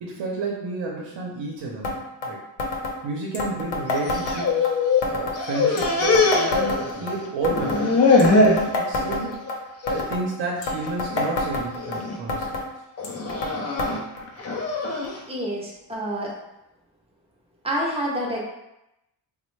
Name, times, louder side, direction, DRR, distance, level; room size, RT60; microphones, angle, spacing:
voice 1, 0.0-2.4 3.0-4.7 5.0-8.0 8.3-9.5 9.8-12.6, right 3 dB, 80° right, -1 dB, 0.7 m, -31 dB
sound 1, 1.8-2.0 2.2-2.3 2.6-3.0 3.3-4.7 5.0-5.4 5.8-7.1 7.4-7.8 8.2-9.6 9.9-10.2 10.6-12.0 12.3-12.7 13.0-13.5 13.8-13.9 14.2-14.3 15.0-15.1 15.9-16.0, left 3 dB, 85° left, 0.7 m, -27 dB
sound 2, 4.0-5.1 5.3-7.2 7.5-8.7 9.1-9.5 9.8-10.0 10.8-11.2 11.8-12.2 13.0-15.2, left 3 dB, 35° left, 0.4 m, -22 dB
voice 2, 15.3-16.4 17.6-18.5, equal, 15° right, -4 dB, 0.5 m, -28 dB
4.1 x 2.1 x 3.1 m, 0.89 s
wide cardioid pair, 170°, 44 cm